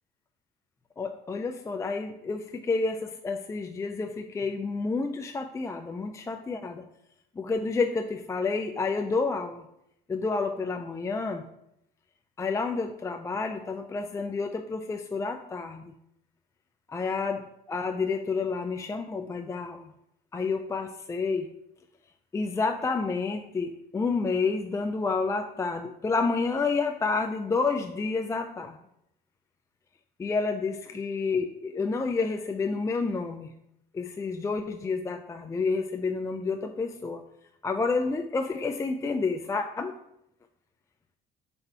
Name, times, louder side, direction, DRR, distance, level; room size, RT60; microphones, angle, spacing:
voice 1, 1.0-6.8 7.4-9.6 10.1-11.4 12.4-15.9 16.9-19.8 20.3-21.5 22.3-28.8 30.2-33.5 33.9-37.2 37.6-40.0, left 4 dB, 20° left, 6 dB, 0.4 m, -29 dB
4.5 x 4.1 x 5.4 m, 0.79 s
cardioid pair, 110°, 17 cm